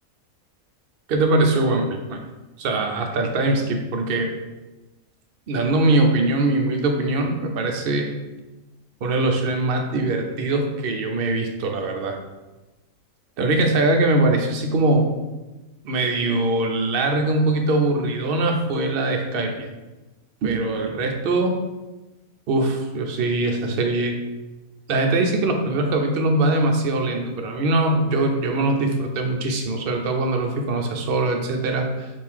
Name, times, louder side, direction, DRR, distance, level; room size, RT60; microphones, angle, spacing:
voice 1, 1.1-2.2 2.6-4.3 5.5-8.1 9.0-12.2 13.4-15.1 15.8-19.7 20.4-21.6 22.5-24.1 24.9-32.1, right 2 dB, 60° right, 3 dB, 0.6 m, -22 dB
3.6 x 2.6 x 4.5 m, 1.1 s
omnidirectional pair, 1.5 m